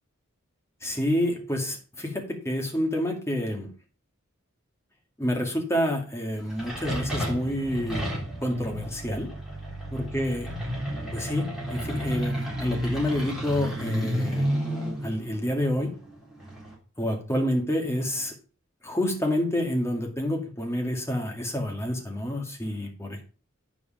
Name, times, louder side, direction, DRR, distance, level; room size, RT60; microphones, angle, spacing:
voice 1, 0.8-3.7 5.2-9.3 9.9-10.5 11.1-14.5 15.0-15.9 17.0-18.3 18.8-23.2, left 1 dB, 15° left, 2 dB, 2.1 m, -28 dB
sound 1, 6.4-16.7, equal, ahead, 3.6 m, -32 dB
9.7 x 5.1 x 5.0 m, 0.35 s
head